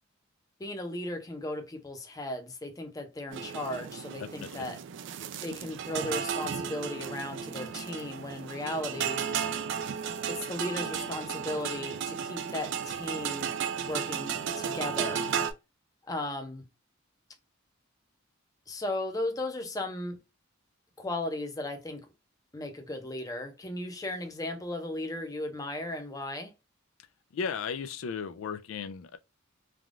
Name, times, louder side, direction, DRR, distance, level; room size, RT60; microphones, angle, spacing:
voice 1, 0.6-4.8 5.4-9.2 10.3-13.5 13.8-15.3 16.1-16.6 18.7-20.2 21.0-22.1 22.5-26.5, left 1 dB, 20° left, 0.5 m, -36 dB
sound 1, 3.3-15.5, right 7 dB, 65° right, 0.3 m, -34 dB
voice 2, 4.2-4.7 27.3-29.2, left 6 dB, 85° left, 0.3 m, -35 dB
3.3 x 2.3 x 2.4 m
head